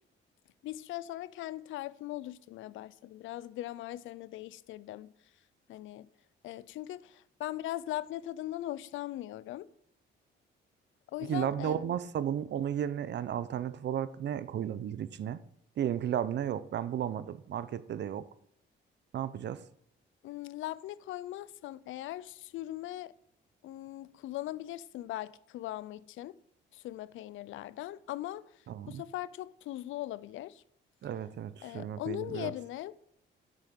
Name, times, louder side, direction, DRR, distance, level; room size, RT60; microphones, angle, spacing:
voice 1, 0.6-5.1 5.7-6.1 6.4-9.7 11.1-11.9 20.2-23.1 23.6-26.4 26.7-28.4 28.9-30.6 31.6-32.9, left 14 dB, 80° left, 0.5 m, -40 dB
voice 2, 11.2-15.4 15.8-18.3 19.1-19.6 28.7-29.0 31.0-32.5, right 10 dB, 60° right, 0.8 m, -34 dB
9.1 x 6.6 x 7.7 m
cardioid pair, 90°, 20 cm